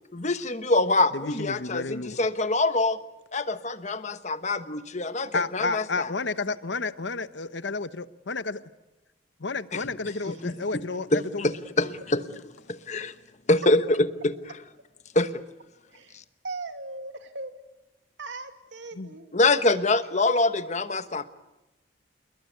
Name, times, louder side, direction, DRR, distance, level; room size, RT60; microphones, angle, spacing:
voice 1, 0.1-3.0 3.3-6.1 10.3-10.5 11.1-12.2 12.7-13.1 13.5-13.8 14.2-14.3 15.1-15.3 19.3-21.2, left 2 dB, 40° left, 11 dB, 1.1 m, -25 dB
voice 2, 1.1-2.2 5.3-8.6 9.4-11.5 18.9-19.1, left 3 dB, 70° left, 13 dB, 1.0 m, -31 dB
voice 3, 15.9-16.2 16.4-17.5 18.2-19.3 19.8-19.9, right 3 dB, 75° right, 7 dB, 2.5 m, -39 dB
28.0 x 21.5 x 9.4 m, 1.0 s
head